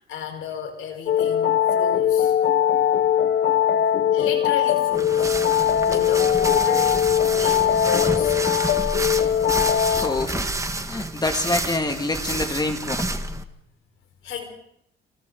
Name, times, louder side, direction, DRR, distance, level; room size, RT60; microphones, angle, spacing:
voice 1, 0.1-2.3 4.1-5.3 5.9-7.0 7.2-8.3 14.2-14.4, left 7 dB, 90° left, 5 dB, 5.1 m, -32 dB
sound 1, 1.1-10.3, left 9 dB, 60° left, 1.3 m, -20 dB
sound 2, 4.9-13.4, right 2 dB, 15° right, 1.8 m, -29 dB
voice 2, 9.9-10.5 10.8-13.2, left 2 dB, 20° left, 5 dB, 2.6 m, -26 dB
29.5 x 28.0 x 4.1 m, 0.70 s
cardioid pair, 90°, 20 cm